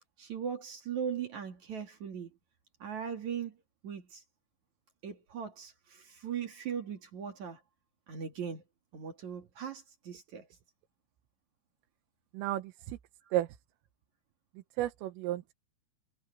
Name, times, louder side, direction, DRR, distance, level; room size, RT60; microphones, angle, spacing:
voice 1, 0.2-2.4 2.8-3.6 3.8-4.2 5.0-7.6 8.1-8.6 8.9-10.5, right 7 dB, 50° right, 2.6 m, -39 dB
voice 2, 12.3-13.0 13.3-13.6 14.8-15.5, right 14 dB, 90° right, 3.8 m, -33 dB
omnidirectional pair, 5.8 m